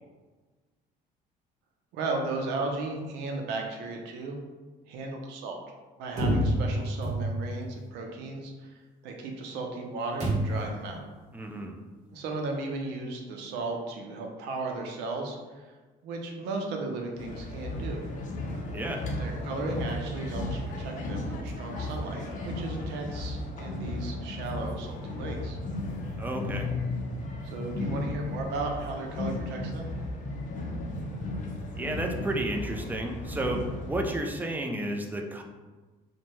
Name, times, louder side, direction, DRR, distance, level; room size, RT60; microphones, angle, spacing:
voice 1, 1.9-4.4 4.9-5.6 6.0-8.7 9.0-11.0 12.1-15.7 16.0-18.1 19.2-25.6 27.4-29.9, right 3 dB, 90° right, 2 dB, 0.5 m, -35 dB
sound 1, 6.2-7.7 10.2-10.8, right 1 dB, 45° right, 1.0 m, -27 dB
voice 2, 11.3-11.7 18.7-19.1 26.2-26.7 31.8-35.4, right 1 dB, 10° right, 2 dB, 0.3 m, -32 dB
sound 2, 17.2-34.2, left 2 dB, 50° left, 0.5 m, -35 dB
2.6 x 2.1 x 3.0 m, 1.3 s
cardioid pair, 110°, 17 cm